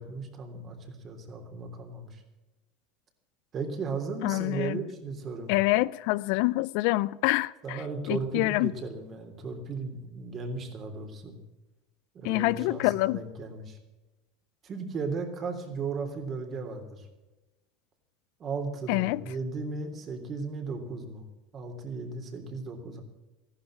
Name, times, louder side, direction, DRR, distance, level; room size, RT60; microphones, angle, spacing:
voice 1, 0.0-2.2 3.5-5.5 7.6-11.4 12.1-13.8 14.6-17.1 18.4-21.2 21.5-23.0, right 4 dB, 40° right, 3.2 m, -36 dB
voice 2, 4.2-4.8 5.5-7.8 8.1-8.7 12.2-13.2 18.9-19.2, left 20 dB, 65° left, 0.4 m, -26 dB
14.0 x 11.5 x 7.4 m
supercardioid pair, 100°, 0 cm